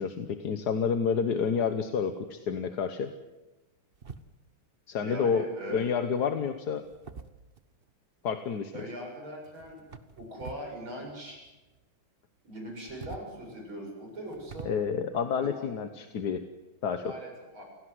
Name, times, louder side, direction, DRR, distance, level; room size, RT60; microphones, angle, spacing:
voice 1, 0.0-3.1 4.9-6.8 8.2-8.9 14.6-16.4 16.8-17.1, left 6 dB, 55° left, 9 dB, 1.5 m, -29 dB
sound 1, 3.9-4.6 5.7-6.1 6.8-7.9 9.4-10.7 11.0-11.9 12.7-14.7, right 5 dB, 35° right, 1.0 m, -47 dB
voice 2, 5.0-5.8 8.7-9.8 10.2-11.4 12.4-14.7 15.4-15.7 17.0-17.6, right 1 dB, 65° right, 0 dB, 8.1 m, -40 dB
29.0 x 17.5 x 8.0 m, 1.1 s
omnidirectional pair, 2.4 m